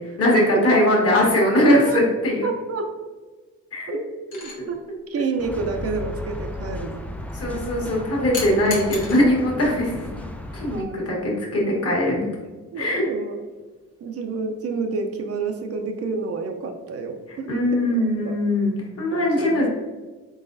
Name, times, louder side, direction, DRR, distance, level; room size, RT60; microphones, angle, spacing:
voice 1, 0.2-2.5 3.7-4.0 4.6-4.7 7.3-10.0 10.5-12.3 12.8-13.0 17.5-19.7, left 1 dB, 50° left, -2 dB, 1.5 m, -21 dB
voice 2, 2.4-2.9 3.9-4.8 5.1-7.1 7.5-7.6 10.7-11.1 12.7-13.4 14.0-18.4 19.1-19.7, right 4 dB, 50° right, 4 dB, 0.5 m, -29 dB
sound 1, 4.3-4.6 8.3-9.2 10.6-10.8, left 3 dB, 85° left, 1.1 m, -33 dB
sound 2, 5.4-10.8, left 2 dB, 5° left, 0.3 m, -34 dB
3.9 x 3.7 x 2.6 m, 1.3 s
cardioid pair, 90°, 30 cm